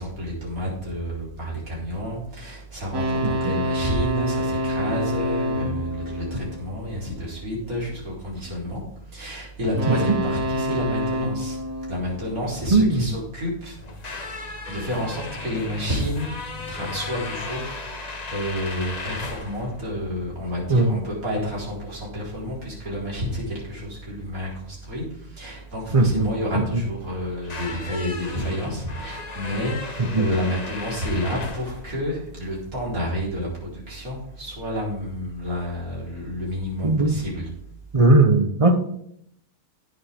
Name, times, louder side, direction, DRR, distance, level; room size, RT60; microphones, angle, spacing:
voice 1, 0.0-8.8 9.1-11.6 11.9-13.8 14.0-16.3 16.7-37.5, equal, 65° right, -5 dB, 4.6 m, -30 dB
sound 1, 2.9-7.3 9.7-13.0, equal, 85° right, 2.0 m, -28 dB
voice 2, 3.2-3.5 9.9-10.0 12.7-13.1 20.7-21.0 25.9-26.3 26.5-26.8 30.0-30.3 36.8-37.2 37.9-38.8, right 2 dB, 30° right, 8 dB, 0.8 m, -19 dB
sound 2, 13.8-32.7, left 3 dB, 30° left, 1.0 m, -37 dB
17.0 x 7.1 x 3.6 m, 0.73 s
omnidirectional pair, 1.6 m